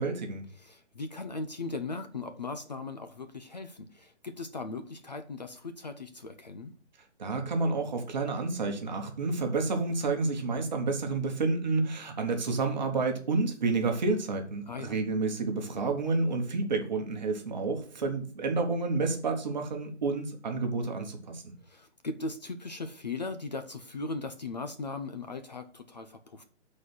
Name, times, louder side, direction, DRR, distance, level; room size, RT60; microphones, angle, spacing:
voice 1, 0.0-0.4 7.2-21.5, right 3 dB, 40° right, 4 dB, 1.3 m, -30 dB
voice 2, 0.6-6.8 14.7-14.9 21.6-26.4, left 3 dB, 35° left, 8 dB, 0.5 m, -38 dB
7.2 x 4.3 x 6.1 m, 0.43 s
hypercardioid pair, 175°, 35 cm